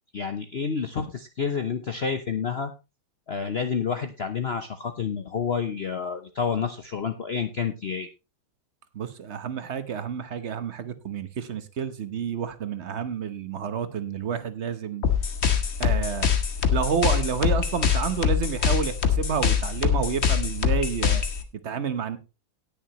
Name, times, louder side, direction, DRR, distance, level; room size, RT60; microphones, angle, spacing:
voice 1, 0.1-2.7 3.3-8.1, left 6 dB, 60° left, 8 dB, 0.6 m, -29 dB
voice 2, 8.9-15.0 15.8-16.3 16.7-21.2 21.6-22.2, right 7 dB, 45° right, 11 dB, 1.0 m, -29 dB
sound 1, 15.0-21.4, left 7 dB, 40° left, 1.2 m, -24 dB
18.5 x 6.8 x 3.0 m, 0.28 s
omnidirectional pair, 2.1 m